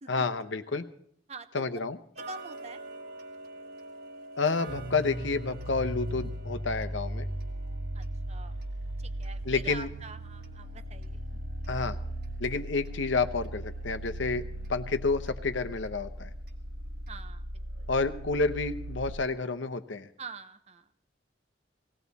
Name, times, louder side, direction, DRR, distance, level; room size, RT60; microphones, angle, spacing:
voice 1, 0.1-0.8 1.5-2.0 4.4-7.3 9.4-9.9 11.7-12.0 12.4-14.4 14.7-16.3 17.9-20.1, left 4 dB, 75° left, 9 dB, 0.9 m, -29 dB
voice 2, 1.3-1.6 2.2-2.8 7.9-8.6 9.0-11.4 14.6-14.7 17.1-17.4 17.8-17.9 20.2-20.8, right 4 dB, 35° right, 11 dB, 0.8 m, -45 dB
Tick-tock, 2.2-13.0 13.4-13.5 14.1-14.2 14.6-14.7 15.3-15.4 15.9-16.0 16.5-16.6 17.1-17.2, right 3 dB, 55° right, 1.5 m, -48 dB
sound 1, 4.7-19.1, right 1 dB, 80° right, 1.8 m, -38 dB
19.0 x 16.5 x 4.1 m, 0.65 s
head